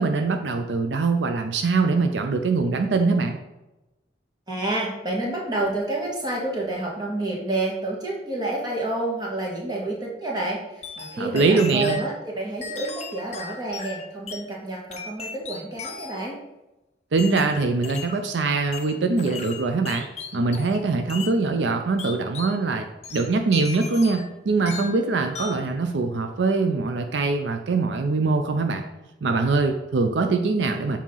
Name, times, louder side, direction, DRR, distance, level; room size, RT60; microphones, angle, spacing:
voice 1, 0.0-3.4 11.2-12.0 17.1-20.1 20.3-22.9 23.1-28.8 29.2-31.0, right 3 dB, 75° right, 5 dB, 0.5 m, -23 dB
voice 2, 4.5-16.4, right 2 dB, 25° right, -3 dB, 1.5 m, -29 dB
sound 1, 10.8-12.1 12.6-14.5 14.9-16.3 17.2-18.3 18.7-20.8 21.1-21.4 22.0-22.6 23.0-24.3 24.7-25.0 25.3-25.7, left 5 dB, 35° left, 0.6 m, -37 dB
7.3 x 2.8 x 5.5 m, 0.99 s
head